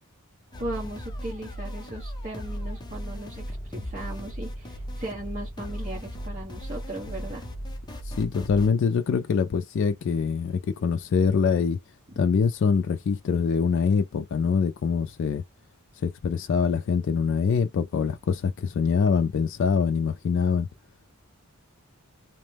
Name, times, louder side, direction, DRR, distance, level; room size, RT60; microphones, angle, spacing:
sound 1, 0.5-8.7, equal, 20° left, 0.6 m, -36 dB
voice 1, 0.6-7.4 12.1-12.2, right 1 dB, 35° right, 1.1 m, -37 dB
voice 2, 8.1-11.8 12.2-15.4 16.0-20.7, left 6 dB, 55° left, 0.3 m, -24 dB
2.9 x 2.1 x 3.2 m
head